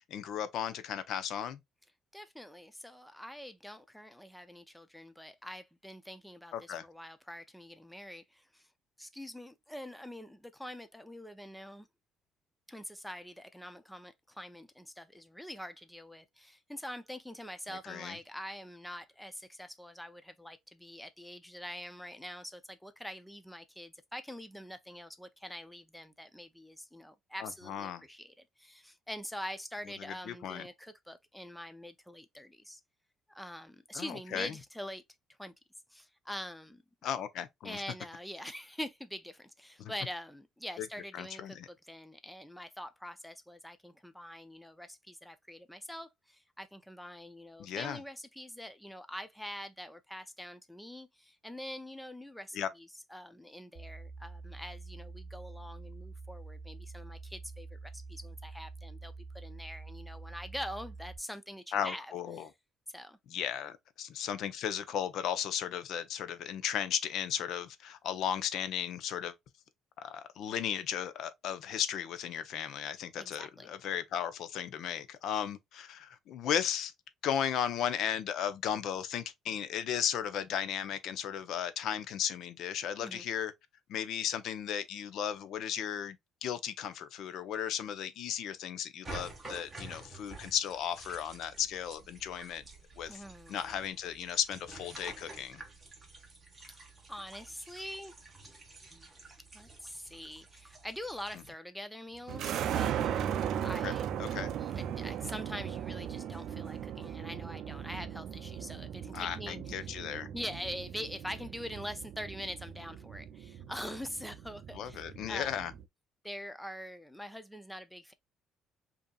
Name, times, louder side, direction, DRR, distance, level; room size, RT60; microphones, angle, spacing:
voice 1, 0.1-1.6 6.5-6.8 17.9-18.2 27.4-28.0 30.3-30.6 33.9-34.5 37.0-37.8 39.8-39.9 40.8-40.9 41.1-41.7 47.6-48.0 52.5-52.7 61.7-62.5 63.3-69.3 70.0-76.9 77.2-83.5 83.9-92.6 93.0-93.2 93.5-95.6 103.8-103.9 104.2-104.5 109.1-110.3 114.7-115.7, left 9 dB, 60° left, 0.6 m, -35 dB
voice 2, 2.1-8.7 9.0-11.9 12.7-32.8 33.3-35.0 35.4-35.5 35.9-36.8 37.6-62.5 62.9-63.2 73.2-73.7 83.0-83.3 93.1-93.8 97.1-98.2 99.5-109.9 110.3-115.6 116.2-118.1, equal, ahead, 0.4 m, -44 dB
sound 1, 53.7-61.2, right 3 dB, 35° right, 0.8 m, -46 dB
sound 2, 89.0-101.5, right 3 dB, 15° right, 1.2 m, -50 dB
sound 3, 102.3-115.8, right 9 dB, 60° right, 0.4 m, -38 dB
5.3 x 2.7 x 2.3 m
cardioid pair, 145°, 0 cm